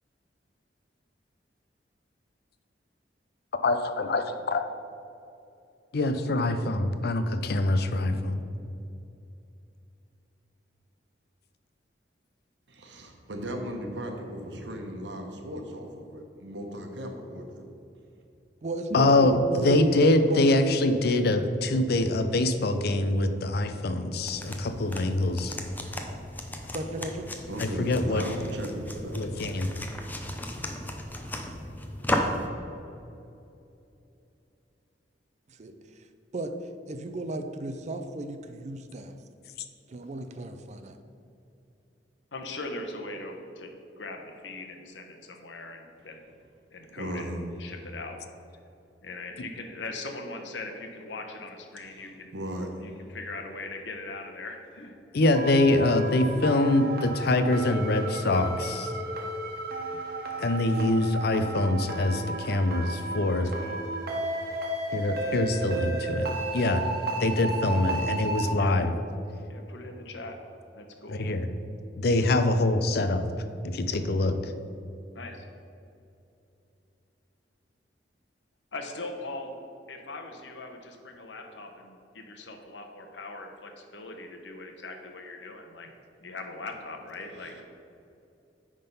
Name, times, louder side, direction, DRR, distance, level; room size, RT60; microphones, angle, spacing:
voice 1, 3.6-4.7 5.9-8.4 18.9-25.6 27.6-28.3 29.2-29.7 55.1-58.9 60.4-63.5 64.9-66.8 67.2-68.9 71.1-71.5 72.0-73.2 73.6-74.5, left 2 dB, 60° left, 8 dB, 0.5 m, -24 dB
voice 2, 12.7-17.5 27.5-29.3 46.9-47.4 52.3-53.0 87.4-87.6, equal, 80° right, 3 dB, 1.1 m, -37 dB
voice 3, 18.6-19.9 20.3-20.5 26.7-27.3 35.5-35.7 36.3-36.5 36.9-39.1 39.9-41.0, right 2 dB, 40° right, 8 dB, 0.5 m, -34 dB
sound 1, 24.1-32.5, left 1 dB, 10° left, 0.6 m, -35 dB
voice 4, 42.3-46.2 46.7-48.2 49.0-52.4 52.8-54.9 63.6-63.8 68.6-68.7 69.5-70.4 70.7-71.2 75.1-75.5 78.7-79.5 79.9-85.9 86.2-87.6, left 2 dB, 90° left, 4 dB, 0.9 m, -40 dB
sound 2, 55.3-68.4, right 2 dB, 60° right, 1.2 m, -34 dB
9.7 x 3.7 x 5.4 m, 2.7 s
head